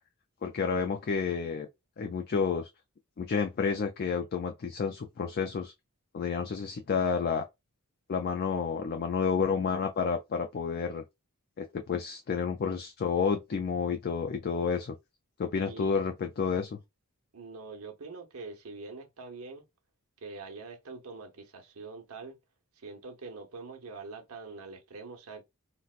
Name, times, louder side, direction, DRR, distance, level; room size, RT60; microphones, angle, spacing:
voice 1, 0.4-1.7 2.0-2.7 3.2-5.7 6.1-7.4 8.1-11.0 11.6-14.9 15.4-16.8, left 5 dB, 45° left, 0.4 m, -30 dB
voice 2, 15.7-16.0 17.3-19.6 20.2-22.4 22.7-25.4, right 4 dB, 75° right, 0.9 m, -44 dB
3.9 x 2.1 x 2.4 m
head